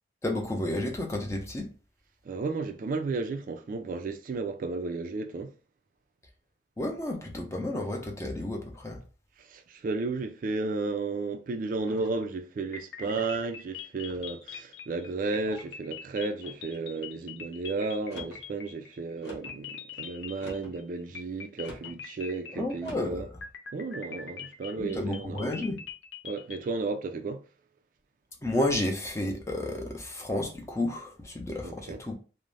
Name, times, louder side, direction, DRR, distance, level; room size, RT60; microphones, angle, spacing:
voice 1, 0.2-1.7 6.8-9.0 22.5-23.3 24.8-25.8 28.4-32.1, left 1 dB, 15° left, 0.5 m, -31 dB
voice 2, 2.2-5.6 9.4-23.3 23.7-25.5 26.2-27.5 31.6-32.0, right 3 dB, 50° right, 0.3 m, -33 dB
sound 1, 11.9-12.3 13.0-13.5 14.1-14.6 15.3-15.7 16.4-16.8 18.0-18.4 19.2-19.6 20.3-20.8 21.6-22.0 22.8-23.2, left 1 dB, 70° left, 0.9 m, -46 dB
sound 2, 12.7-19.1 19.4-20.8 21.2-23.0 23.4-26.8, left 6 dB, 90° left, 0.5 m, -43 dB
2.5 x 2.0 x 3.1 m
head